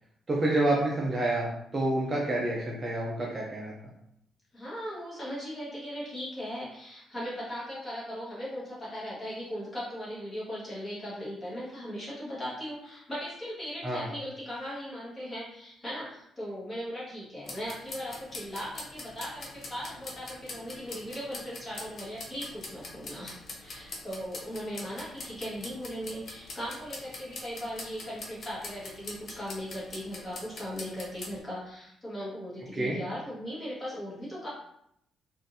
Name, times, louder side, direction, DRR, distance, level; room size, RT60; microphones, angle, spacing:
voice 1, 0.3-1.5 1.7-3.7 13.8-14.0 32.7-33.0, right 1 dB, 25° right, -3 dB, 0.5 m, -28 dB
voice 2, 4.5-34.5, equal, 20° left, -8 dB, 1.4 m, -38 dB
sound 1, 17.4-31.4, left 2 dB, 40° left, 0.5 m, -44 dB
3.7 x 2.5 x 2.6 m, 0.76 s
cardioid pair, 165°, 0 cm